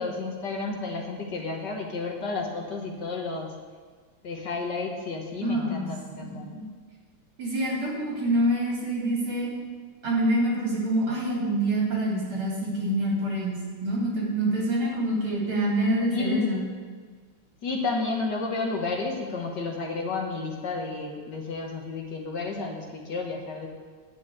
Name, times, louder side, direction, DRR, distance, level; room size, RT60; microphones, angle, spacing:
voice 1, 0.0-3.5 4.2-6.5 16.1-16.5 17.6-23.7, left 3 dB, 55° left, 1 dB, 1.8 m, -31 dB
voice 2, 5.4-5.9 6.1-6.6 7.4-9.5 10.0-16.6, right 1 dB, 75° right, -5 dB, 4.2 m, -26 dB
10.5 x 6.1 x 8.3 m, 1.5 s
omnidirectional pair, 2.3 m